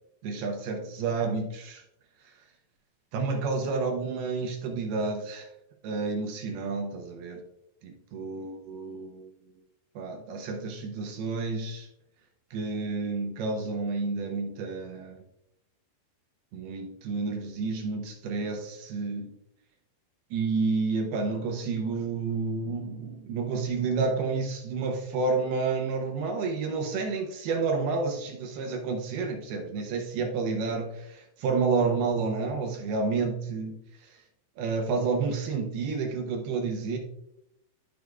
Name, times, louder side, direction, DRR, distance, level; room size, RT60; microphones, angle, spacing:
voice 1, 0.2-1.8 3.1-5.5 5.8-7.4 7.8-9.3 10.0-11.9 12.5-15.2 16.5-19.3 20.3-34.2 34.6-37.0, right 4 dB, 75° right, 2 dB, 2.5 m, -30 dB
12.5 x 6.3 x 2.3 m, 0.82 s
omnidirectional pair, 5.2 m